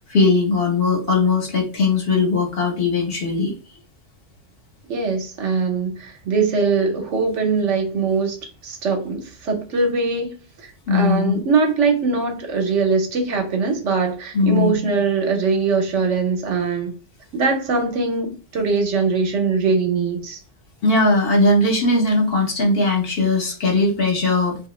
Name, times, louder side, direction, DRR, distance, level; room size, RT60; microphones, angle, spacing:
voice 1, 0.1-3.5 10.9-11.4 14.3-14.7 20.8-24.6, left 3 dB, 55° left, 1.0 m, -19 dB
voice 2, 4.9-8.4 8.6-10.3 10.9-16.9 17.3-20.4, right 4 dB, 75° right, 1.1 m, -21 dB
2.8 x 2.5 x 3.1 m
omnidirectional pair, 1.3 m